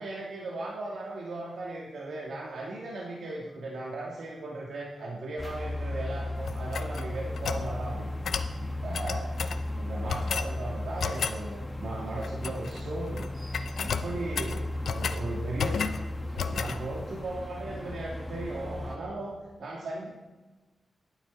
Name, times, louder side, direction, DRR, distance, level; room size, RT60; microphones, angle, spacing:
voice 1, 0.0-8.1 8.6-13.3 13.8-15.8 16.2-20.1, right 2 dB, 75° right, -4 dB, 2.8 m, -37 dB
sound 1, 5.4-19.0, left 1 dB, 5° left, 1.6 m, -35 dB
sound 2, 6.4-7.7 8.2-8.5 8.9-9.6 10.1-10.5 11.0-11.4 12.2-12.8 13.1-13.3 13.5-15.2 15.6-16.0 16.4-16.8, left 6 dB, 80° left, 0.9 m, -32 dB
28.0 x 12.0 x 4.3 m, 1.2 s
wide cardioid pair, 170°, 0 cm